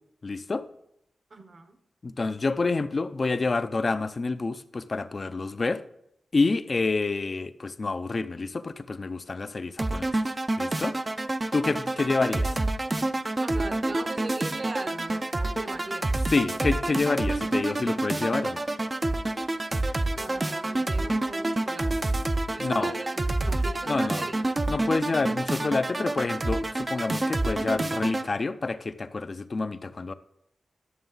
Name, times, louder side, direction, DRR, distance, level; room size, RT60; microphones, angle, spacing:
voice 1, 0.2-0.6 2.0-5.8 6.3-10.1 10.6-11.0 11.5-12.5 16.3-18.6 22.6-22.9 23.9-24.2 24.7-30.1, left 3 dB, 45° left, 0.5 m, -28 dB
voice 2, 1.3-1.8 13.4-16.1 20.2-22.1 22.5-23.1 23.4-24.4, right 3 dB, 50° right, 0.9 m, -39 dB
sound 1, 9.8-28.3, right 2 dB, 30° right, 0.5 m, -28 dB
11.0 x 6.8 x 3.9 m
wide cardioid pair, 80°, 0 cm